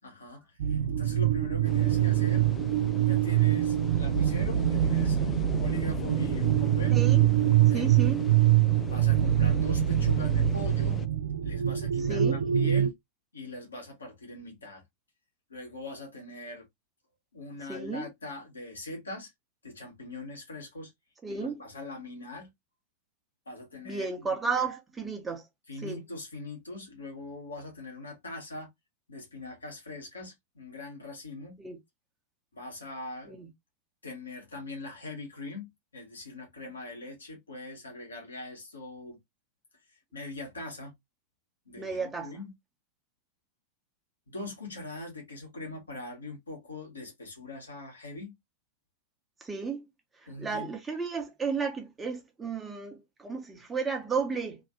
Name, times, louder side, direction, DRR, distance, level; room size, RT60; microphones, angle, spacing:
voice 1, 0.0-2.5 3.1-7.0 7.6-7.9 8.9-11.0 11.4-12.9 13.3-14.8 15.5-16.7 17.3-19.3 19.6-20.9 21.3-22.5 23.5-24.4 25.7-28.7 29.1-31.6 32.5-33.3 34.0-35.7 35.9-39.2 40.1-40.9 41.6-42.5 44.3-48.3 50.3-50.7, left 2 dB, 75° left, 1.3 m, -41 dB
sound 1, 0.6-12.9, right 12 dB, 60° right, 0.4 m, -24 dB
sound 2, 1.6-11.1, left 6 dB, 20° left, 0.3 m, -39 dB
voice 2, 6.9-7.3 7.7-8.2 12.1-12.4 17.7-18.1 21.2-21.6 23.8-25.4 25.8-26.0 31.6-31.8 33.3-33.5 41.8-42.3 49.4-49.8 50.4-54.6, right 5 dB, 15° right, 0.9 m, -33 dB
2.9 x 2.5 x 2.5 m
figure-of-eight pair, 90°, 0 cm